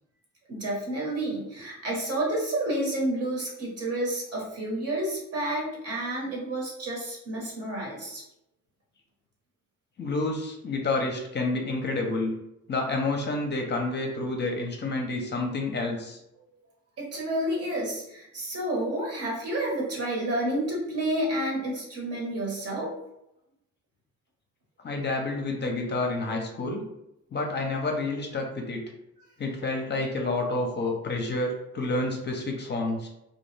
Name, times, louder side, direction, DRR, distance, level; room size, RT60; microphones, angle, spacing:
voice 1, 0.5-8.2 17.0-22.9, right 1 dB, 55° right, -3 dB, 1.1 m, -30 dB
voice 2, 10.0-12.3 12.7-16.2 24.8-26.8 27.3-28.8 29.4-33.1, left 2 dB, 35° left, 2 dB, 0.6 m, -29 dB
2.4 x 2.2 x 3.2 m, 0.84 s
cardioid pair, 90°, 30 cm